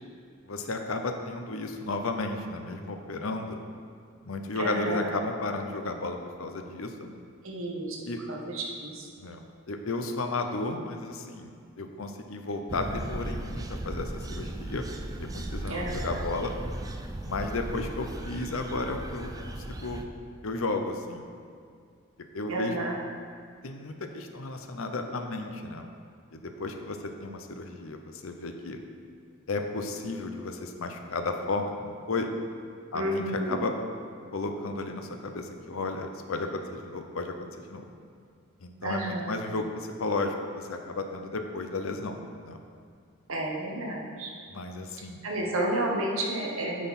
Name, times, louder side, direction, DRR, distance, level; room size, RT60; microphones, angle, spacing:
voice 1, 0.4-3.6 4.2-7.1 8.1-8.2 9.2-11.5 11.8-14.8 15.2-16.5 17.2-20.1 20.4-21.2 22.3-22.8 23.6-25.9 26.3-28.8 29.5-32.3 32.9-33.7 34.3-37.9 38.6-42.6 44.5-45.2, left 3 dB, 70° left, 5 dB, 0.7 m, -33 dB
voice 2, 4.6-5.1 7.4-8.0 8.3-9.1 15.7-16.2 22.5-23.0 32.9-33.6 38.8-39.4 43.3-44.3 45.2-46.9, right 1 dB, 70° right, -1 dB, 1.4 m, -31 dB
sound 1, 12.7-20.0, right 1 dB, 15° right, 0.4 m, -36 dB
9.3 x 6.0 x 4.2 m, 2.3 s
head